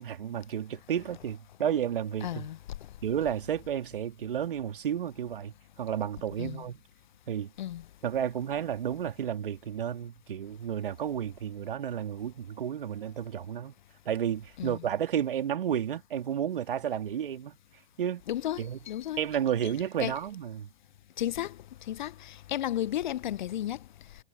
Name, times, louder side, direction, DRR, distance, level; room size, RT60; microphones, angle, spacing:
voice 1, 0.0-2.5 3.0-6.8 7.3-7.5 8.0-13.7 14.0-17.6 18.0-18.2 18.6-18.8 19.2-20.7, right 9 dB, 60° right, 3.3 m, -32 dB
voice 2, 2.2-2.6 6.4-6.6 7.6-7.8 14.6-14.8 18.3-19.2 20.0-20.1 21.2-21.6 21.9-23.8, left 12 dB, 50° left, 0.9 m, -33 dB
figure-of-eight pair, 110°, 30 cm